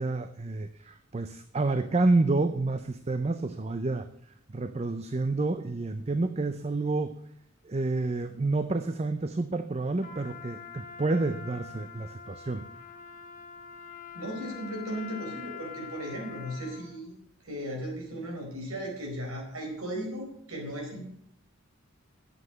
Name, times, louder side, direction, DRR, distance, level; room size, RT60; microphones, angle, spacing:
voice 1, 0.0-4.1 4.5-7.2 7.6-12.6, right 3 dB, 30° right, 10 dB, 0.5 m, -29 dB
Trumpet, 10.0-17.0, left 7 dB, 35° left, 1.0 m, -44 dB
voice 2, 14.1-17.1 17.4-21.1, equal, 85° right, 0 dB, 4.6 m, -36 dB
9.4 x 7.6 x 7.8 m, 0.71 s
head